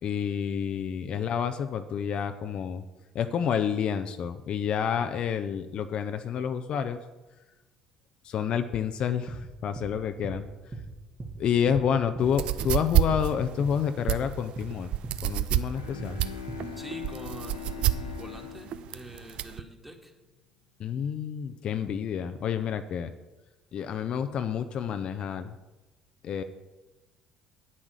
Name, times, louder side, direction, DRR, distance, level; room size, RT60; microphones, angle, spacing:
voice 1, 0.0-2.8 3.1-7.0 8.2-10.5 11.4-14.9 15.2-16.2 20.8-23.1 23.7-25.6 26.2-26.4, left 8 dB, 50° left, 9 dB, 0.6 m, -29 dB
sound 1, 9.3-9.4 9.8-9.9 10.2-10.4 10.7-10.9 11.2-11.4 11.7-11.8 12.1-12.3 12.6-12.8 13.1-13.3 13.6-13.8 14.1-14.2 14.6-14.7 15.0-15.2 15.5-15.7 16.0-16.2 16.5-16.6, right 3 dB, 35° right, 1.8 m, -38 dB
sound 2, 12.2-19.6, right 12 dB, 55° right, 0.5 m, -28 dB
Bowed string instrument, 15.7-20.0, left 11 dB, 85° left, 0.9 m, -42 dB
voice 2, 16.8-20.1, right 1 dB, 10° right, 3 dB, 2.0 m, -45 dB
8.7 x 8.4 x 6.4 m, 1.1 s
figure-of-eight pair, 55°, 2 cm